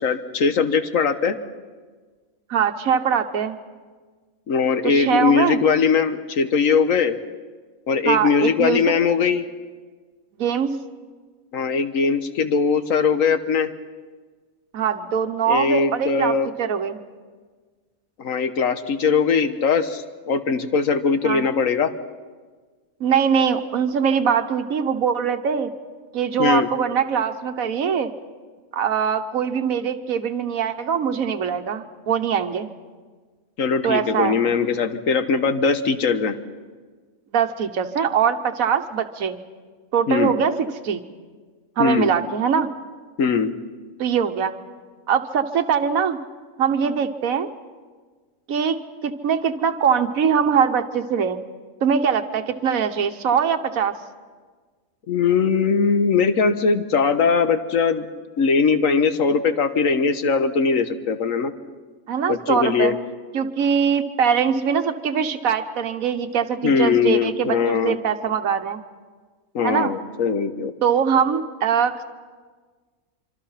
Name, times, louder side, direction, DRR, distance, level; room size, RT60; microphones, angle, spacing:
voice 1, 0.0-1.4 4.5-7.2 7.9-9.4 11.5-13.7 15.5-16.5 18.2-21.9 26.4-26.7 33.6-36.4 40.1-40.3 41.8-42.1 43.2-43.5 55.1-58.1 58.4-61.5 62.3-62.9 66.6-68.0 69.5-70.7, left 5 dB, 70° left, 9 dB, 1.6 m, -20 dB
voice 2, 2.5-3.6 4.8-5.6 8.0-8.9 10.4-10.8 14.7-17.0 21.2-21.4 23.0-25.7 26.1-28.1 28.7-32.7 33.8-34.4 37.3-39.4 39.9-40.5 40.8-41.0 41.8-42.7 44.0-44.5 45.1-46.2 46.6-47.5 48.5-48.8 49.0-51.4 51.8-54.0 62.1-62.9 63.3-68.8 69.6-69.9 70.8-72.0, right 7 dB, 80° right, 8 dB, 1.5 m, -22 dB
26.0 x 25.5 x 5.8 m, 1.4 s
omnidirectional pair, 1.5 m